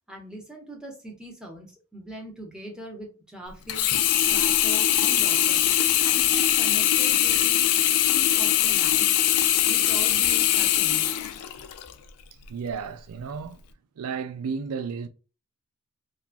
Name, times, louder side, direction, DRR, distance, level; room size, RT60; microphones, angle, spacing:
voice 1, 0.1-1.7 1.9-3.8 4.2-5.6 6.0-7.7 8.1-9.1 9.7-11.0, right 1 dB, 5° right, 0.9 m, -40 dB
Sink (filling or washing), 3.7-11.9 12.5-12.6, left 11 dB, 90° left, 0.4 m, -22 dB
voice 2, 12.5-13.6 14.0-15.1, right 5 dB, 85° right, 0.4 m, -32 dB
3.0 x 2.3 x 2.4 m
head